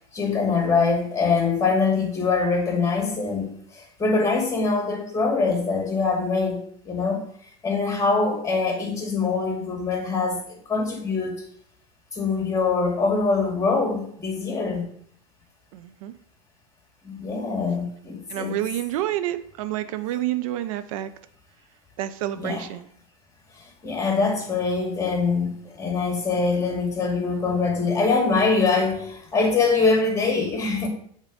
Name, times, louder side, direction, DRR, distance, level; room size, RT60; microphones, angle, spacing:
voice 1, 0.1-7.2 7.6-11.4 12.1-14.9 17.0-18.6 22.4-22.8 23.6-30.9, left 4 dB, 15° left, 2.5 m, -24 dB
voice 2, 15.7-16.1 18.3-21.1 22.0-22.8, right 13 dB, 65° right, 0.5 m, -28 dB
7.1 x 4.0 x 5.0 m
hypercardioid pair, 95°, 19 cm